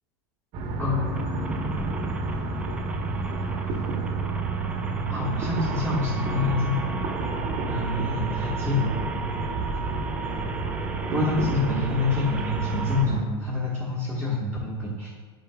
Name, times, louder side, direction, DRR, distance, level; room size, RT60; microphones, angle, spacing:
sound 1, 0.5-13.2, right 3 dB, 45° right, 1.1 m, -30 dB
voice 1, 0.8-1.5 5.1-6.8 7.6-9.1 11.1-15.1, left 3 dB, 10° left, -9 dB, 1.4 m, -27 dB
sound 2, 1.1-13.0, right 3 dB, 10° right, 0.4 m, -36 dB
9.3 x 4.6 x 2.3 m, 1.5 s
supercardioid pair, 130°, 14 cm